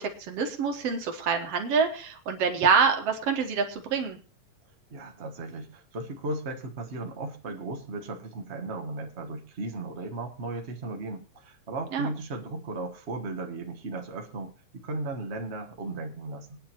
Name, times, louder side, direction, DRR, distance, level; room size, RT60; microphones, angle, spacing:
voice 1, 0.0-4.2 11.9-12.1, right 5 dB, 60° right, 5 dB, 2.1 m, -26 dB
voice 2, 4.9-16.6, right 2 dB, 80° right, 3 dB, 0.5 m, -36 dB
23.0 x 9.7 x 3.0 m, 0.37 s
omnidirectional pair, 3.5 m